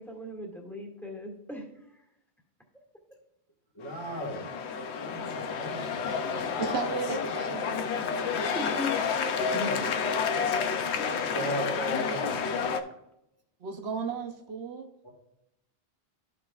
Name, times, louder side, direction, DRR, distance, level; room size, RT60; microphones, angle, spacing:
voice 1, 0.0-1.6 8.5-8.9 9.5-9.9, left 2 dB, ahead, 0 dB, 1.9 m, -37 dB
voice 2, 3.7-4.5 4.9-6.0 11.2-12.5 15.0-15.1, equal, 25° left, -1 dB, 1.6 m, -36 dB
sound 1, 3.9-12.8, left 6 dB, 75° left, 0.9 m, -30 dB
voice 3, 6.6-7.7 13.6-14.9, right 6 dB, 70° right, 4 dB, 1.0 m, -34 dB
13.5 x 5.9 x 2.3 m, 0.84 s
omnidirectional pair, 1.1 m